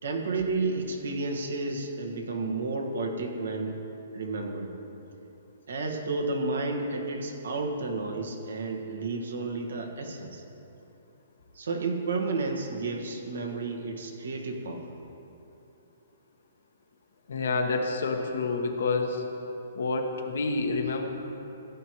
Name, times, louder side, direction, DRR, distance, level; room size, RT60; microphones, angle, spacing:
voice 1, 0.0-3.8 4.1-4.7 5.7-10.4 11.5-14.9, right 3 dB, 75° right, 2 dB, 1.5 m, -31 dB
voice 2, 17.3-19.2 19.7-21.1, left 3 dB, 75° left, 3 dB, 1.2 m, -28 dB
15.5 x 9.5 x 3.1 m, 3.0 s
hypercardioid pair, 140°, 0 cm